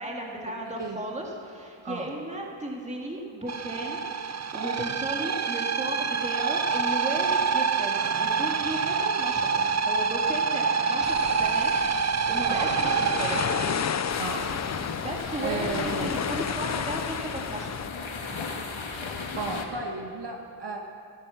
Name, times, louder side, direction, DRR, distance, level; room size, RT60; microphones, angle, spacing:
voice 1, 0.0-11.8 12.3-13.6 15.0-15.7 16.0-17.9, right 1 dB, 15° right, -1 dB, 2.2 m, -35 dB
sound 1, 3.5-14.3, right 5 dB, 35° right, 0.5 m, -27 dB
sound 2, 11.0-17.9, left 8 dB, 35° left, 0.4 m, -32 dB
voice 2, 12.5-12.8 14.2-14.5 15.4-16.1 19.4-20.8, right 3 dB, 55° right, 1 dB, 1.6 m, -33 dB
sound 3, 14.1-19.6, left 4 dB, 70° left, 1.9 m, -36 dB
17.0 x 12.0 x 7.1 m, 2.6 s
wide cardioid pair, 115°, 48 cm